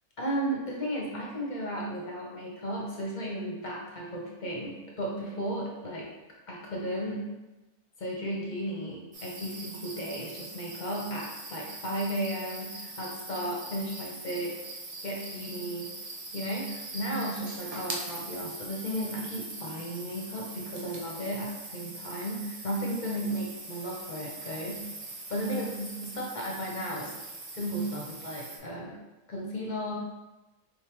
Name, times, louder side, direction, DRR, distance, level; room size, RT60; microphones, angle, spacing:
voice 1, 0.2-6.1 6.5-7.3 8.0-14.6 15.0-15.9 16.3-24.8 25.3-27.1 27.5-29.0 29.3-29.9, equal, 40° left, -3 dB, 0.7 m, -34 dB
sound 1, 9.1-28.6, right 2 dB, 70° right, 0.3 m, -42 dB
3.9 x 3.5 x 3.0 m, 1.1 s
omnidirectional pair, 1.5 m